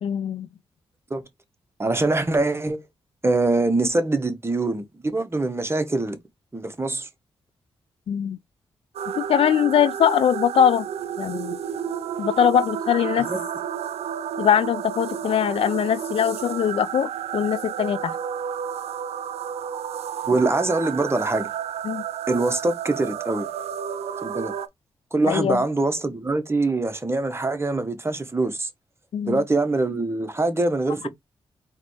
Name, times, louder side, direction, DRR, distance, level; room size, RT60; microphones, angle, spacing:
voice 1, 0.0-0.5 8.1-8.4 9.2-10.9 11.2-11.6 12.2-13.3 14.4-18.2 21.8-22.0 25.3-25.6 29.1-29.4, left 9 dB, 70° left, 0.4 m, -22 dB
voice 2, 1.8-2.8 3.2-6.2 6.5-7.1 13.3-13.4 20.3-21.5 22.3-23.5 24.2-24.5 25.1-28.7 29.3-31.1, right 2 dB, 25° right, 1.2 m, -23 dB
sound 1, 8.9-24.7, right 8 dB, 80° right, 0.4 m, -31 dB
3.9 x 3.2 x 3.3 m
cardioid pair, 55°, 10 cm